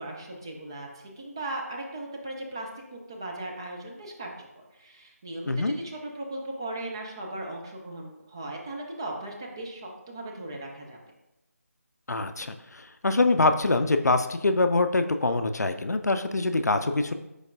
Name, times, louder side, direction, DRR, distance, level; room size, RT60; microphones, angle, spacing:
voice 1, 0.0-11.0, right 1 dB, 15° right, 0 dB, 0.3 m, -38 dB
voice 2, 12.1-17.1, left 2 dB, 85° left, 8 dB, 0.4 m, -24 dB
4.6 x 4.3 x 2.5 m, 0.94 s
figure-of-eight pair, 160°, 9 cm